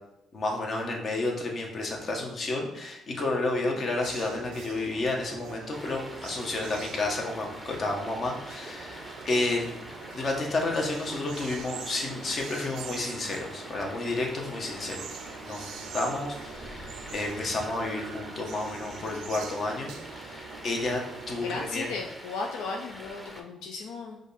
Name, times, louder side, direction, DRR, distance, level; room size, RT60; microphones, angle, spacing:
voice 1, 0.3-9.8 10.1-21.9, left 2 dB, 50° left, 1 dB, 1.0 m, -31 dB
sound 1, 4.0-21.7, right 6 dB, 80° right, 0.4 m, -44 dB
Stream, 5.7-23.4, equal, 5° left, 0.8 m, -45 dB
voice 2, 21.4-24.2, left 3 dB, 85° left, 0 dB, 0.5 m, -36 dB
5.0 x 2.5 x 4.0 m, 0.83 s
cardioid pair, 80°, 0 cm